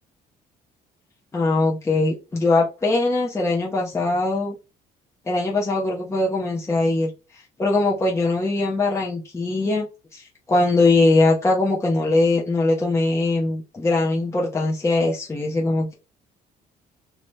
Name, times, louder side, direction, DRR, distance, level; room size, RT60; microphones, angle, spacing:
voice 1, 1.3-4.5 5.3-7.1 7.6-9.9 10.1-15.9, left 2 dB, 15° left, -3 dB, 0.8 m, -21 dB
3.2 x 2.8 x 3.2 m, 0.30 s
cardioid pair, 110°, 17 cm